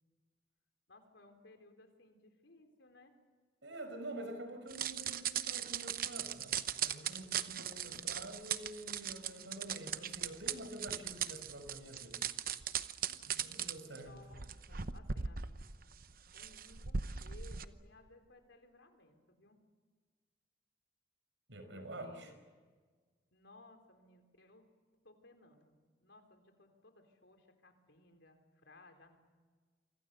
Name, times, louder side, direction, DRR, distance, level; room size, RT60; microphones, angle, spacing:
voice 1, 0.9-3.2 7.4-7.9 13.9-15.6 16.3-19.6 21.7-22.4 23.3-24.6 24.9-29.2, left 2 dB, 75° left, 6 dB, 3.9 m, -61 dB
voice 2, 3.6-12.6 13.1-14.2 21.5-22.3, right 1 dB, 80° right, 8 dB, 5.1 m, -48 dB
sound 1, 4.7-17.7, right 8 dB, 50° right, 0.9 m, -39 dB
28.0 x 25.0 x 6.8 m, 1.5 s
head